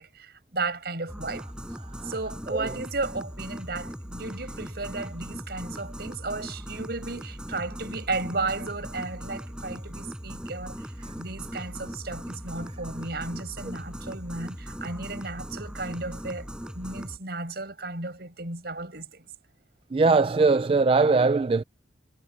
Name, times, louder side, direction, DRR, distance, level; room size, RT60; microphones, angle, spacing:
voice 1, 0.0-1.5 2.0-10.8 11.2-19.3, right 3 dB, 60° right, 6.1 m, -34 dB
sound 1, 1.1-17.2, equal, 5° right, 5.8 m, -39 dB
voice 2, 19.9-21.6, right 4 dB, 30° right, 0.3 m, -21 dB
head